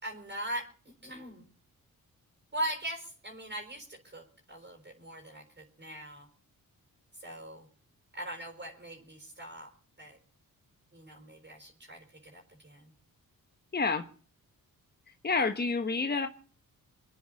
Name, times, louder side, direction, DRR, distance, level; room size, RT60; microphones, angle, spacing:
voice 1, 0.0-1.4 2.5-6.3 7.2-7.7 8.1-9.7 10.0-10.2 10.9-12.9, right 1 dB, 30° right, 1 dB, 5.1 m, -41 dB
voice 2, 13.7-14.1 15.1-16.3, left 4 dB, 30° left, 7 dB, 1.2 m, -29 dB
26.5 x 9.6 x 5.4 m, 0.42 s
cardioid pair, 75°, 36 cm